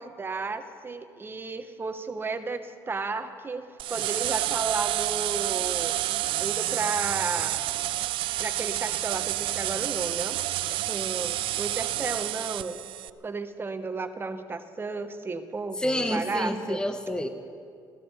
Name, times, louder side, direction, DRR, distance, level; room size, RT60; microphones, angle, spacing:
voice 1, 0.0-7.6 8.4-10.4 10.7-12.8 13.2-16.8, right 4 dB, 25° right, 9 dB, 1.1 m, -33 dB
sound 1, 3.8-13.1, right 15 dB, 85° right, 0.4 m, -29 dB
voice 2, 15.8-17.3, left 1 dB, 10° left, 7 dB, 1.0 m, -28 dB
15.0 x 13.0 x 7.1 m, 2.3 s
cardioid pair, 110°, 8 cm